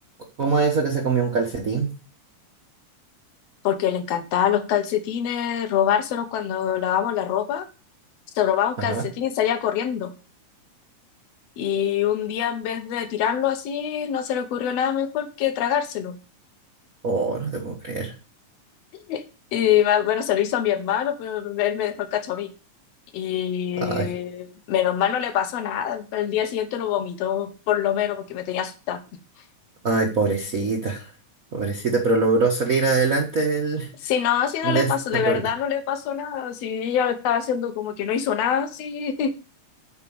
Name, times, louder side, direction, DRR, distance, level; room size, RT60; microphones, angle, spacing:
voice 1, 0.4-1.9 8.8-9.0 17.0-18.1 23.8-24.1 29.8-31.1 31.5-33.9 34.6-35.5, right 4 dB, 75° right, 1 dB, 0.7 m, -23 dB
voice 2, 3.6-7.7 8.4-10.1 11.6-16.2 19.1-19.2 19.5-22.5 23.1-29.0 34.0-39.4, left 9 dB, 65° left, 8 dB, 2.0 m, -24 dB
8.0 x 5.0 x 7.0 m, 0.34 s
omnidirectional pair, 3.5 m